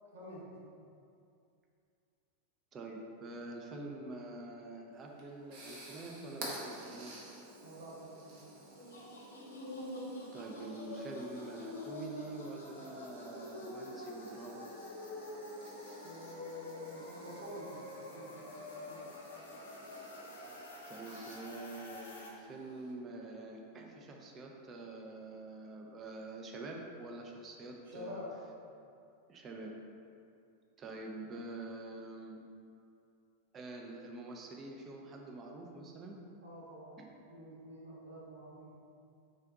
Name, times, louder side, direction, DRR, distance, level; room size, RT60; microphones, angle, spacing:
voice 1, 0.1-0.5 7.6-8.5 16.0-19.1 27.8-28.3 36.4-37.0 37.3-38.7, equal, 65° right, -7 dB, 1.3 m, -49 dB
voice 2, 2.7-7.1 10.3-14.6 20.9-28.2 29.3-29.7 30.8-32.4 33.5-36.2 37.0-37.1, right 2 dB, 25° right, 0 dB, 0.5 m, -46 dB
sound 1, 4.9-22.9, right 1 dB, 45° right, 0.9 m, -52 dB
sound 2, 8.7-22.3, left 1 dB, 70° left, 0.7 m, -46 dB
3.9 x 3.3 x 3.6 m, 2.5 s
figure-of-eight pair, 90°, 0 cm